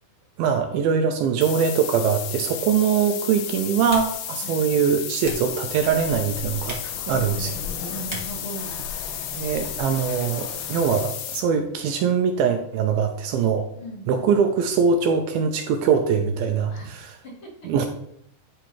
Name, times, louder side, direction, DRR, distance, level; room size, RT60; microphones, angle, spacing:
voice 1, 0.4-7.5 9.3-13.7 14.1-17.1 17.6-17.9, right 6 dB, 80° right, 6 dB, 2.3 m, -22 dB
sound 1, 1.4-11.4, left 10 dB, 75° left, 2.5 m, -33 dB
Typing, 2.1-9.6, equal, 30° right, 0.5 m, -43 dB
sound 2, 5.7-11.0, left 4 dB, 60° left, 3.3 m, -38 dB
voice 2, 6.9-8.7 13.7-14.4 16.7-16.9 17.2-17.5, right 1 dB, 40° left, -5 dB, 2.5 m, -39 dB
11.0 x 3.9 x 4.6 m, 0.69 s
omnidirectional pair, 4.6 m